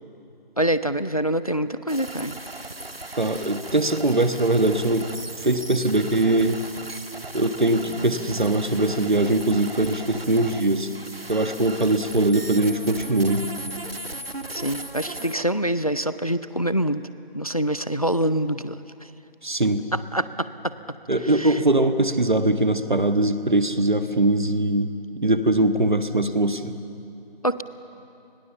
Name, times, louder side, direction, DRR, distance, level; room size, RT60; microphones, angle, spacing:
voice 1, 0.6-2.4 14.5-17.0 17.3-18.8 20.1-20.7 21.4-21.5 27.4-27.6, right 1 dB, 40° left, 14 dB, 0.5 m, -25 dB
sound 1, 1.9-15.4, right 2 dB, 75° right, 1.6 m, -37 dB
voice 2, 3.2-5.1 5.4-6.6 7.3-10.9 11.3-13.4 19.4-19.9 21.1-24.9 25.2-26.7, right 2 dB, 50° right, 9 dB, 1.4 m, -21 dB
Bass guitar, 11.6-11.8, right 3 dB, 20° right, 4.5 m, -46 dB
30.0 x 21.0 x 7.0 m, 2.7 s
figure-of-eight pair, 170°, 30 cm